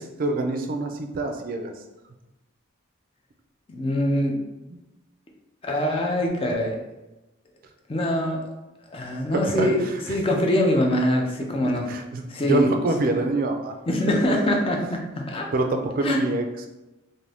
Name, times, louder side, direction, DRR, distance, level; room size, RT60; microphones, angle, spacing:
voice 1, 0.2-1.7 9.3-9.7 10.1-10.2 11.6-13.8 15.5-16.7, right 2 dB, 45° right, 5 dB, 0.3 m, -25 dB
voice 2, 3.7-4.4 5.6-6.8 7.9-8.4 8.9-9.8 10.1-11.9 12.3-12.6 13.0-13.1 13.9-15.5 16.0-16.2, left 1 dB, 30° left, 1 dB, 0.4 m, -23 dB
2.6 x 2.6 x 3.3 m, 1.0 s
head